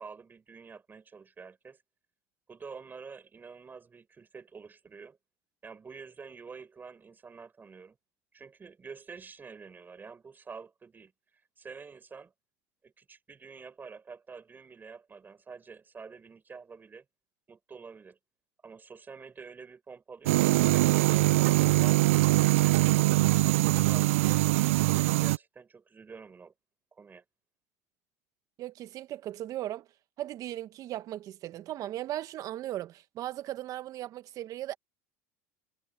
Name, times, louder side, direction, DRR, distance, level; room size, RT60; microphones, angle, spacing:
voice 1, 0.0-1.8 2.5-5.2 5.6-8.0 8.3-11.1 11.6-12.3 12.8-17.0 17.5-18.2 18.6-23.0 23.6-26.5 26.9-27.2, right 5 dB, 25° right, 6.5 m, -48 dB
sound 1, 20.3-25.4, right 19 dB, 85° right, 0.3 m, -23 dB
voice 2, 28.6-29.9 30.2-34.8, right 13 dB, 55° right, 1.6 m, -37 dB
hypercardioid pair, 85°, 7 cm